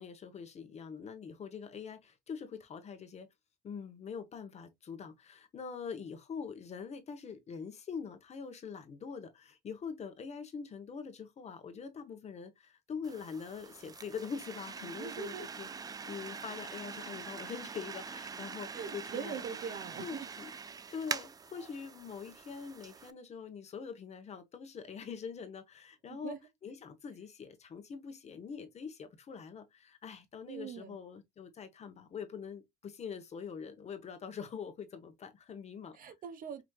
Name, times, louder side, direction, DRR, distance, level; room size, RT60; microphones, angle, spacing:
voice 1, 0.0-3.3 3.6-15.7 16.0-19.4 20.0-20.5 20.9-36.0, left 6 dB, 40° left, 1.0 m, -44 dB
sound 1, 13.0-23.1, right 5 dB, 20° right, 0.4 m, -44 dB
voice 2, 14.8-15.5 18.7-20.3 26.1-26.4 30.5-31.0 35.9-36.6, right 7 dB, 55° right, 0.8 m, -42 dB
5.0 x 3.1 x 2.3 m
cardioid pair, 110°, 17 cm